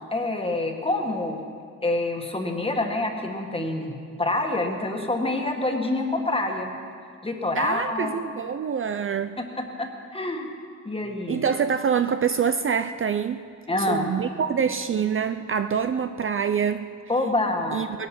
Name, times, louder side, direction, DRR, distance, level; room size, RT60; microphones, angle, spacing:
voice 1, 0.1-1.4 1.8-6.7 7.2-8.2 9.6-10.5 10.8-11.4 13.7-14.1 17.1-17.9, left 2 dB, 20° left, 3 dB, 1.6 m, -26 dB
voice 2, 7.5-9.4 11.3-13.4 13.9-16.9 17.7-18.1, right 7 dB, 45° right, 10 dB, 0.5 m, -25 dB
19.5 x 11.5 x 6.0 m, 2.2 s
wide cardioid pair, 140°, 31 cm